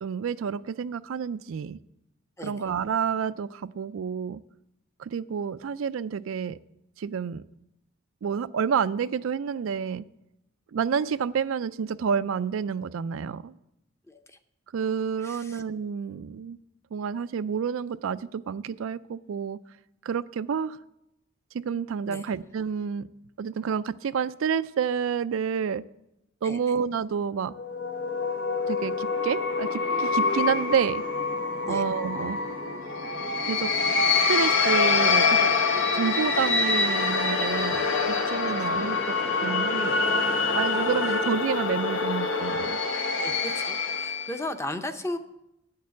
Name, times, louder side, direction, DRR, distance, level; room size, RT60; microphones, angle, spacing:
voice 1, 0.0-1.8 2.4-4.4 5.0-6.6 7.0-7.4 8.2-10.0 10.7-13.5 14.7-16.6 16.9-19.6 20.0-20.8 21.6-23.1 23.4-25.8 26.4-27.5 28.7-31.0 31.6-32.4 33.4-33.7 34.3-35.5 35.9-37.9 38.3-40.0 40.5-42.8, right 7 dB, 85° right, 0.4 m, -29 dB
voice 2, 14.1-14.4 15.2-15.6 22.1-22.2 26.4-26.6 31.6-31.8 38.5-38.7 41.1-41.2 43.2-45.2, left 1 dB, 15° left, 0.6 m, -36 dB
sound 1, 27.6-44.4, left 4 dB, 75° left, 1.0 m, -25 dB
8.4 x 6.6 x 8.3 m
head